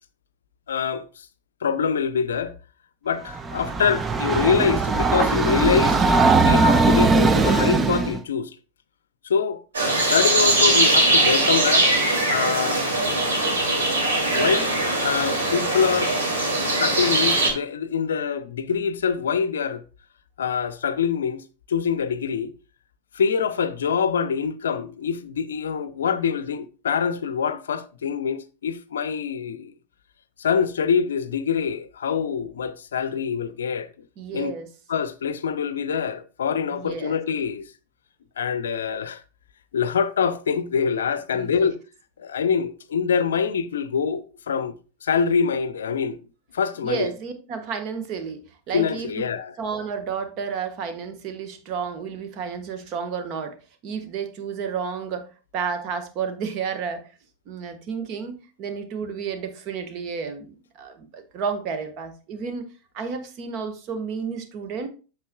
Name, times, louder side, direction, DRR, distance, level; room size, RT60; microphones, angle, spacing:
voice 1, 0.7-1.3 1.6-2.5 3.0-6.0 6.3-8.5 9.2-9.6 10.1-11.9 12.3-12.8 14.3-14.8 15.0-16.1 16.8-19.8 20.4-22.5 23.1-29.7 30.4-33.9 34.3-34.5 34.9-37.7 38.4-39.2 39.7-41.8 42.2-44.8 45.0-46.2 46.5-47.1 48.7-49.5, left 6 dB, 65° left, 0.6 m, -25 dB
Train, 3.3-8.2, right 3 dB, 20° right, 0.6 m, -19 dB
sound 1, 9.7-17.5, right 2 dB, 70° right, 2.5 m, -21 dB
voice 2, 34.2-34.7 36.7-37.2 41.3-41.7 46.8-48.4 48.7-49.1 49.6-53.6 53.8-55.3 55.5-57.0 57.5-62.7 62.9-64.9, right 6 dB, 40° right, 1.3 m, -31 dB
8.2 x 6.7 x 2.3 m
figure-of-eight pair, 90°, 0 cm